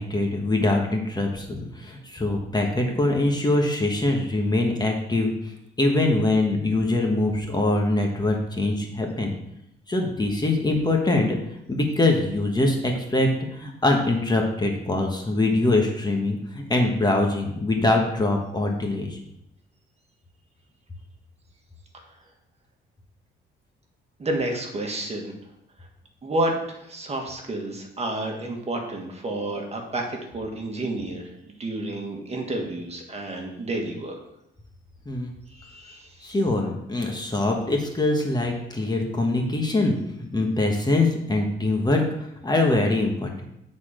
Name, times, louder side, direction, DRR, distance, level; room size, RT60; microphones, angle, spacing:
voice 1, 0.0-9.3 9.9-11.4 11.7-19.2 35.0-35.3 36.2-43.4, left 2 dB, 20° left, 1 dB, 1.4 m, -23 dB
voice 2, 24.2-25.3 26.2-34.2 35.5-36.1, right 1 dB, 30° right, 1 dB, 1.8 m, -30 dB
9.5 x 4.3 x 5.1 m, 0.80 s
cardioid pair, 90°, 20 cm